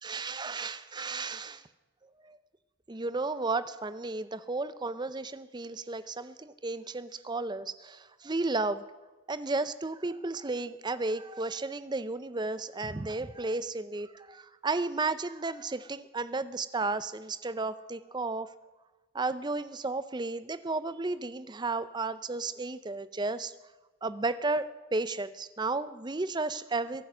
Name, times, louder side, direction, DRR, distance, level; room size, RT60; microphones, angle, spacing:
voice 1, 0.0-1.6 2.2-2.4 2.9-8.8 9.3-18.5 19.1-23.5 24.0-27.1, right 3 dB, 20° right, 14 dB, 0.5 m, -33 dB
23.0 x 9.4 x 6.1 m, 1.2 s
head